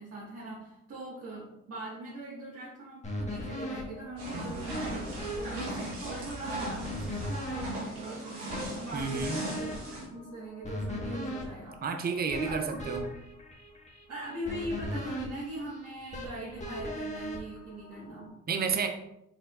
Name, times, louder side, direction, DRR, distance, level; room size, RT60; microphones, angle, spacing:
voice 1, 0.0-9.8 10.1-11.8 12.4-12.8 14.1-18.3, right 1 dB, 50° right, -7 dB, 1.7 m, -41 dB
sound 1, 3.0-18.3, equal, 20° left, 1.5 m, -39 dB
sound 2, 4.2-10.0, right 1 dB, 80° right, 1.6 m, -38 dB
voice 2, 8.9-9.4 11.8-13.1 18.5-18.9, right 5 dB, 30° right, 6 dB, 0.6 m, -31 dB
4.7 x 4.0 x 2.5 m, 0.82 s
hypercardioid pair, 50°, 33 cm